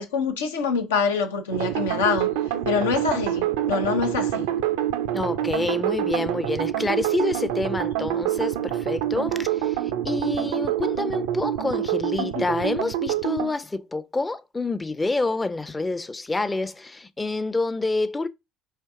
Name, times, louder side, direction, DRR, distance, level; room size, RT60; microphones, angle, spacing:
voice 1, 0.0-2.3 2.7-4.5 12.2-12.4, left 5 dB, 80° left, 0.7 m, -25 dB
sound 1, 1.5-13.5, right 11 dB, 75° right, 0.4 m, -26 dB
voice 2, 5.1-9.8 10.0-18.3, left 3 dB, 20° left, 0.5 m, -27 dB
4.5 x 2.8 x 3.5 m
figure-of-eight pair, 55°, 0 cm